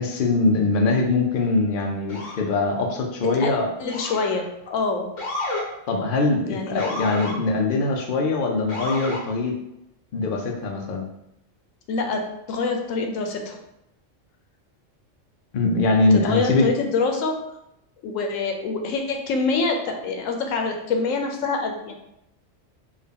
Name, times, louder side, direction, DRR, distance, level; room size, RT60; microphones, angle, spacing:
voice 1, 0.0-3.7 5.9-9.5 10.1-11.1 15.5-16.7, left 3 dB, 55° left, 1 dB, 0.7 m, -22 dB
Motor vehicle (road) / Siren, 2.1-2.5 3.9-4.4 5.2-5.7 6.8-7.4 8.7-9.2, left 2 dB, 70° left, 1.2 m, -30 dB
voice 2, 3.2-3.5 3.8-5.1 6.4-6.9 11.9-13.6 16.1-17.4 18.0-21.9, left 4 dB, 90° left, 3 dB, 1.0 m, -25 dB
3.6 x 2.3 x 3.5 m, 0.82 s
omnidirectional pair, 1.3 m